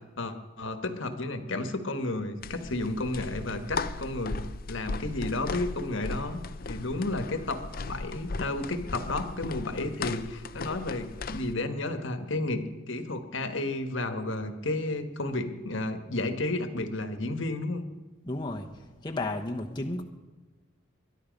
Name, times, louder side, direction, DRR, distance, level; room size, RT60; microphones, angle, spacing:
voice 1, 0.2-6.4 6.7-17.8, left 2 dB, 60° left, 8 dB, 1.4 m, -32 dB
sound 1, 2.4-11.5, left 3 dB, 45° left, 0.5 m, -37 dB
voice 2, 18.3-18.7 19.0-20.0, left 2 dB, 20° left, 1 dB, 1.0 m, -32 dB
22.0 x 11.5 x 5.3 m, 1.3 s
head